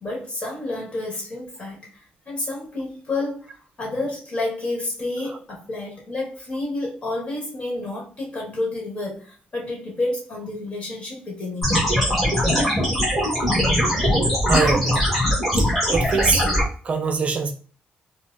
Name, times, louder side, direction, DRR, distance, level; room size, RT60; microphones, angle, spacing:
voice 1, 0.0-11.7, left 2 dB, 35° left, 1.5 m, -30 dB
sound 1, 11.6-16.6, equal, 5° left, 1.4 m, -20 dB
voice 2, 14.5-15.1 15.6-16.5 16.8-17.5, right 4 dB, 40° right, 0.5 m, -23 dB
4.5 x 2.1 x 2.6 m
cardioid pair, 135°, 3 cm